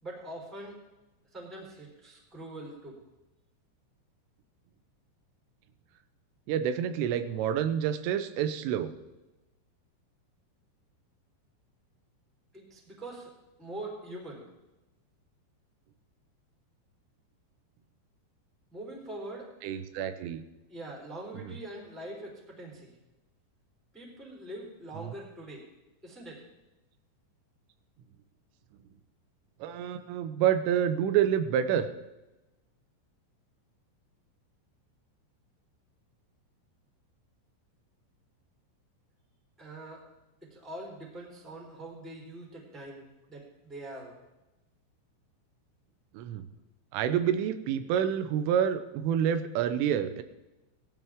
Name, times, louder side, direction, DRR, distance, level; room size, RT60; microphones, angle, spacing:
voice 1, 0.0-0.8 1.3-3.0 12.5-13.3 13.6-14.4 18.7-19.5 20.7-22.9 23.9-25.6 26.0-26.4 39.6-40.0 40.5-44.1, right 1 dB, ahead, -2 dB, 2.9 m, -43 dB
voice 2, 6.5-8.9 19.6-20.4 21.4-21.5 25.0-25.1 29.6-31.9 46.1-46.4 46.9-50.2, right 9 dB, 90° right, 10 dB, 3.4 m, -28 dB
18.5 x 12.5 x 3.7 m, 1.0 s
omnidirectional pair, 5.6 m